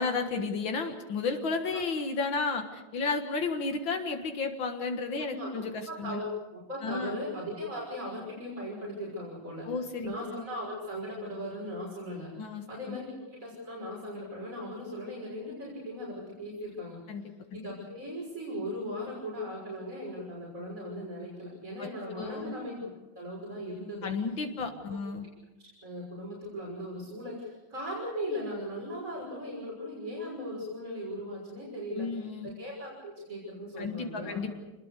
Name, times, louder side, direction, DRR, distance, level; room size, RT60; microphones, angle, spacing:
voice 1, 0.0-6.2 6.8-7.2 9.7-10.4 12.4-13.0 17.1-17.2 21.8-21.9 22.2-22.5 24.0-25.3 32.0-32.6 33.8-34.6, left 4 dB, 75° left, 5 dB, 2.4 m, -33 dB
voice 2, 5.2-9.7 10.0-12.3 12.7-17.0 17.5-24.1 24.6-25.0 25.8-32.1 32.4-34.6, equal, 40° right, -4 dB, 6.7 m, -38 dB
27.0 x 20.5 x 6.7 m, 1.1 s
omnidirectional pair, 2.2 m